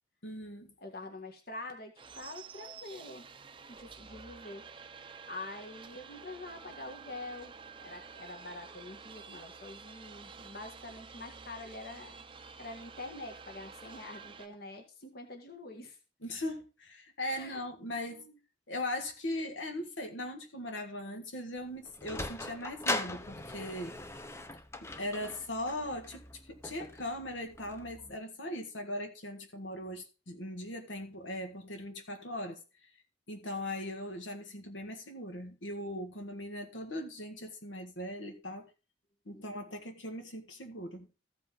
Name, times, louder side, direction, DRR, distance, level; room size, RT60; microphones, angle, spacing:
voice 1, 0.2-0.7 16.2-18.2 18.7-23.9 25.0-32.9 33.3-38.7 39.2-41.1, left 1 dB, 75° left, 1.7 m, -39 dB
voice 2, 0.8-3.3 3.7-4.7 5.0-12.2 12.6-16.0 17.3-17.6 18.0-18.4 39.3-39.6, left 2 dB, 50° left, 1.6 m, -46 dB
sound 1, 2.0-14.5, right 5 dB, 25° right, 0.6 m, -50 dB
Sliding door, 21.6-28.1, left 2 dB, 15° left, 0.6 m, -40 dB
14.5 x 5.3 x 3.9 m
head